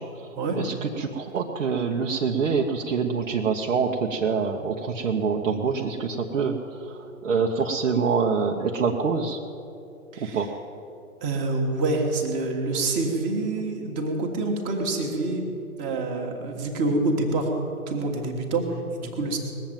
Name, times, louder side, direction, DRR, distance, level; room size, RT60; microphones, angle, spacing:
voice 1, 0.6-9.4 10.2-10.5, right 5 dB, 60° right, 0 dB, 1.2 m, -26 dB
voice 2, 11.2-15.4 15.8-17.5 17.9-19.4, right 2 dB, 15° right, 2 dB, 1.5 m, -26 dB
20.0 x 7.6 x 9.1 m, 2.8 s
hypercardioid pair, 150°, 43 cm